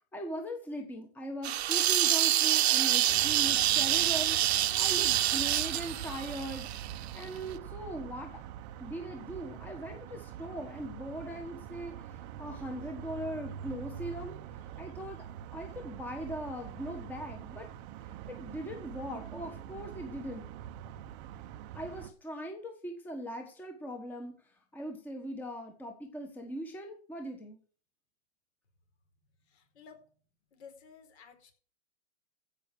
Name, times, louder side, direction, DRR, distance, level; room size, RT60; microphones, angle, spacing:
voice 1, 0.1-4.4 4.8-6.7 7.1-8.4 8.8-14.4 14.8-15.2 15.5-17.7 18.3-20.5 21.7-27.6, equal, 5° left, 4 dB, 1.2 m, -40 dB
sound 1, 1.4-7.2, right 13 dB, 60° right, 0.9 m, -27 dB
sound 2, 3.1-22.1, right 10 dB, 25° right, 0.7 m, -44 dB
voice 2, 29.4-30.1 30.5-31.5, left 6 dB, 60° left, 5 dB, 4.6 m, -54 dB
15.5 x 5.7 x 6.7 m, 0.43 s
hypercardioid pair, 155°, 36 cm